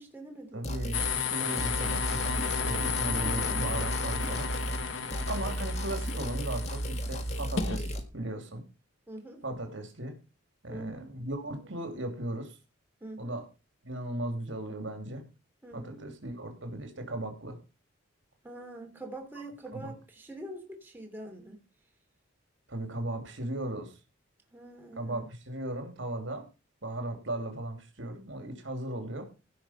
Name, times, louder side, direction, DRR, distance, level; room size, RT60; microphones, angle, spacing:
voice 1, 0.0-0.9 3.1-3.6 9.1-9.4 10.7-11.1 13.0-13.4 15.6-16.0 18.4-21.6 24.5-25.3, right 1 dB, 10° right, 2.9 m, -44 dB
voice 2, 0.5-4.5 5.3-8.6 9.4-10.1 10.6-12.6 13.2-13.5 13.8-15.2 15.7-17.6 19.7-19.9 22.7-23.9 25.0-26.5 26.8-29.3, right 1 dB, 65° right, 2.8 m, -37 dB
sound 1, 0.6-1.2 1.6-4.9 5.1-8.0, right 1 dB, 30° left, 1.8 m, -34 dB
sound 2, 0.9-7.8, left 6 dB, 65° left, 1.2 m, -33 dB
16.5 x 5.7 x 5.7 m
head